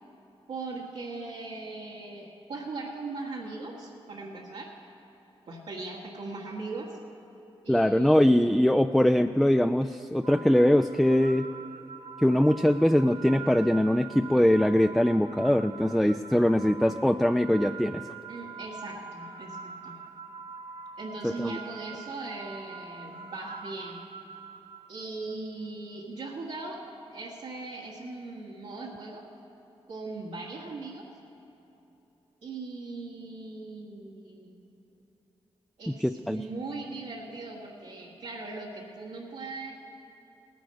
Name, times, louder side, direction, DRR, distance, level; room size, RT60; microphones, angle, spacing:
voice 1, 0.5-4.7 5.5-7.0 7.6-8.6 18.3-20.0 21.0-24.0 24.9-26.8 27.1-29.2 29.9-31.0 32.4-34.6 35.8-39.8, right 3 dB, 80° right, -6 dB, 1.5 m, -39 dB
voice 2, 7.7-11.5 12.2-18.0 21.2-21.6 35.9-36.4, left 1 dB, ahead, 8 dB, 0.4 m, -22 dB
sound 1, 10.2-25.4, right 5 dB, 45° right, 0.7 m, -44 dB
18.0 x 9.3 x 5.2 m, 3.0 s
cardioid pair, 50°, 11 cm